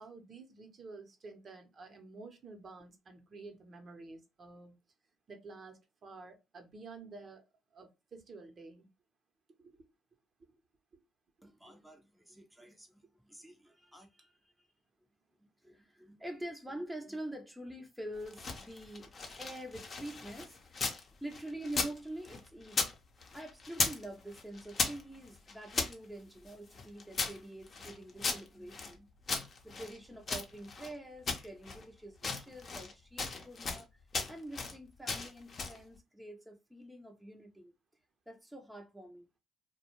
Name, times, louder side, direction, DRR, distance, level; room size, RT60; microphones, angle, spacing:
voice 1, 0.0-4.8 5.3-7.4 7.7-8.9 9.5-9.9 10.4-10.6 10.9-11.0, right 3 dB, 45° right, 0.8 m, -51 dB
voice 2, 11.4-14.4 15.6-19.1 19.4-22.8 23.3-33.9 34.3-37.7 38.3-39.3, right 1 dB, 5° right, 0.7 m, -46 dB
sound 1, 18.2-21.0 21.3-23.0 23.2-24.1 24.3-25.9 26.5-28.9 29.3-30.9 31.3-31.8 32.2-32.9 33.2-33.8 34.1-34.8 35.1-35.8, left 4 dB, 45° left, 0.7 m, -36 dB
2.3 x 2.2 x 2.9 m
supercardioid pair, 65°, 0 cm